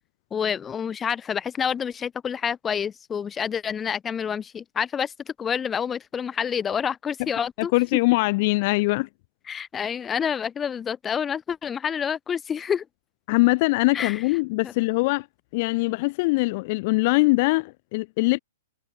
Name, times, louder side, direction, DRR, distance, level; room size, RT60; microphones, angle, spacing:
voice 1, 0.3-7.7 9.5-12.8 13.9-14.2 14.6-14.7, left 7 dB, 20° left, 1.7 m, -28 dB
voice 2, 7.6-9.1 13.3-15.3 15.5-18.4, left 24 dB, 45° left, 1.1 m, -22 dB
hypercardioid pair, 120°, 0 cm